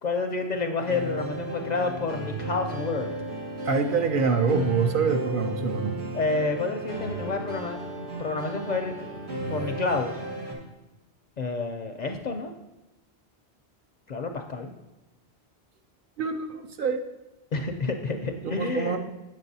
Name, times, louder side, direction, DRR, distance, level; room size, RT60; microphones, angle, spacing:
voice 1, 0.0-3.1 6.1-9.1 9.5-10.2 11.4-12.5 14.1-14.7 17.5-19.0, left 3 dB, 55° left, 5 dB, 0.5 m, -29 dB
sound 1, 0.8-10.5, right 1 dB, 90° right, 1.6 m, -34 dB
voice 2, 3.7-6.0 16.2-17.0 18.4-19.0, right 5 dB, 60° right, 6 dB, 0.7 m, -25 dB
7.4 x 7.3 x 2.7 m, 1.0 s
omnidirectional pair, 1.1 m